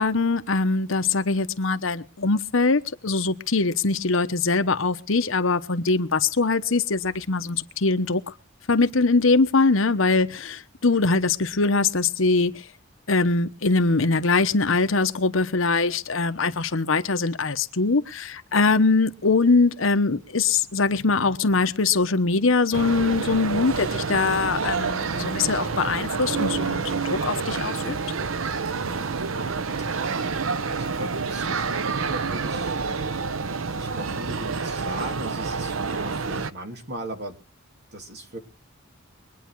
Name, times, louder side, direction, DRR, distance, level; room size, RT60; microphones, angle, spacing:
voice 1, 0.0-8.2 8.7-12.6 13.1-27.9, left 3 dB, 75° left, 1.1 m, -22 dB
sound 1, 22.7-36.5, right 4 dB, 80° right, 0.8 m, -28 dB
voice 2, 28.8-29.6 30.5-32.8 33.7-37.4 37.9-38.4, right 1 dB, 55° right, 2.9 m, -38 dB
23.0 x 9.4 x 4.7 m
head